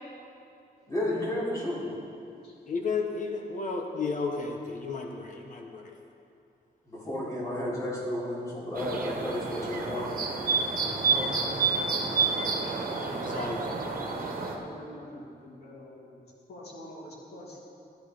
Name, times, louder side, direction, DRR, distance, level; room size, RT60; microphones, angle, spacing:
voice 1, 0.8-1.8 6.9-10.3 10.9-11.3, left 1 dB, 20° left, -7 dB, 3.3 m, -32 dB
voice 2, 2.7-5.9 13.1-13.6, left 4 dB, 50° left, 2 dB, 1.1 m, -33 dB
sound 1, 8.7-14.6, right 4 dB, 60° right, 1.4 m, -29 dB
voice 3, 14.1-17.6, equal, 90° left, -4 dB, 2.8 m, -46 dB
13.5 x 10.5 x 5.0 m, 2.6 s
wide cardioid pair, 180°, 16 cm